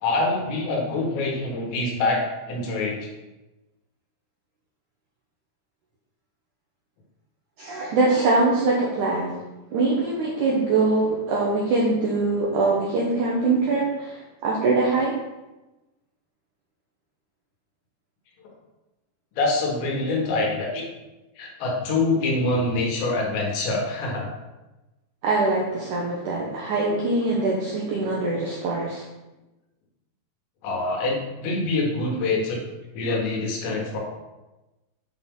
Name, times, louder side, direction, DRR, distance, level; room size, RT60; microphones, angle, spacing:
voice 1, 0.0-3.1 19.3-20.9 21.4-24.3 26.5-26.6 26.8-26.9 30.6-32.6 32.9-34.0, left 2 dB, 85° left, -1 dB, 3.8 m, -25 dB
voice 2, 7.6-9.4 9.7-15.1 25.2-29.0, right 3 dB, 80° right, -3 dB, 1.8 m, -23 dB
8.6 x 5.7 x 3.8 m, 1.1 s
omnidirectional pair, 4.9 m